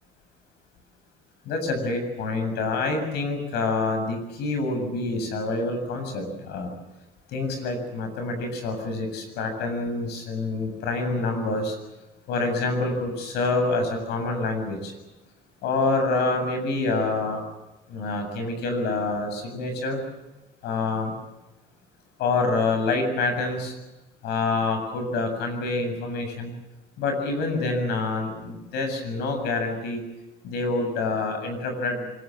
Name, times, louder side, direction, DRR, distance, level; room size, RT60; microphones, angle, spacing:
voice 1, 1.5-6.7 7.3-11.8 12.3-14.9 15.6-17.4 17.9-20.0 20.6-21.1 22.2-23.7 24.2-26.5 27.0-30.0 30.4-32.1, left 3 dB, 80° left, 6 dB, 7.6 m, -27 dB
25.0 x 22.5 x 7.8 m, 1.0 s
cardioid pair, 110°, 17 cm